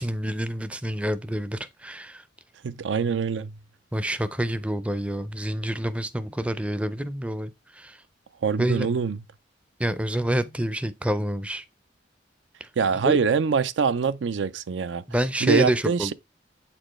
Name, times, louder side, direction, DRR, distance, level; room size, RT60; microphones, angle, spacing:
voice 1, 0.0-2.2 3.9-8.0 8.6-8.9 9.8-11.6 12.6-12.7 13.0-13.2 15.1-16.1, right 1 dB, 5° right, 0.4 m, -27 dB
voice 2, 2.6-3.5 8.4-9.2 12.8-15.0 15.4-16.1, right 5 dB, 85° right, 0.4 m, -24 dB
7.9 x 4.4 x 3.1 m
head